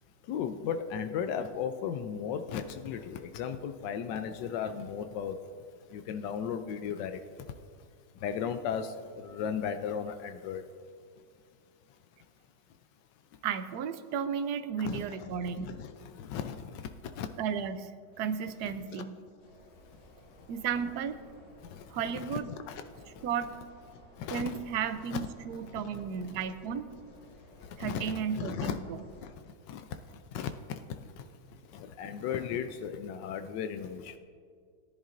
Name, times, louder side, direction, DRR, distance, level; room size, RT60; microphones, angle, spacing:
voice 1, 0.3-5.4 5.9-7.2 8.2-10.6 14.8-16.8 17.2-17.3 22.2-22.4 22.7-22.8 24.2-24.6 25.1-25.3 27.8-28.8 29.7-29.8 30.3-30.5 31.7-34.2, left 8 dB, 85° left, 8 dB, 1.3 m, -35 dB
voice 2, 13.4-15.7 17.4-19.2 20.5-21.2 21.9-22.5 23.2-23.5 24.3-26.9 27.8-29.0, right 7 dB, 70° right, 10 dB, 1.1 m, -34 dB
sound 1, 19.4-29.3, left 1 dB, 55° left, 3.5 m, -55 dB
18.5 x 10.5 x 2.6 m, 2.1 s
omnidirectional pair, 1.9 m